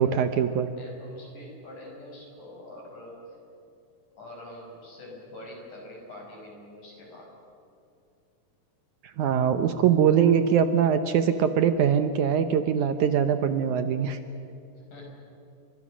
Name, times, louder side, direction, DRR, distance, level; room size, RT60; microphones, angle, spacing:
voice 1, 0.0-0.7 9.2-14.2, right 8 dB, 75° right, 9 dB, 1.9 m, -22 dB
voice 2, 0.5-3.2 4.1-7.3 14.9-15.0, left 1 dB, 55° left, -1 dB, 7.1 m, -45 dB
29.5 x 25.0 x 6.3 m, 2.6 s
omnidirectional pair, 4.3 m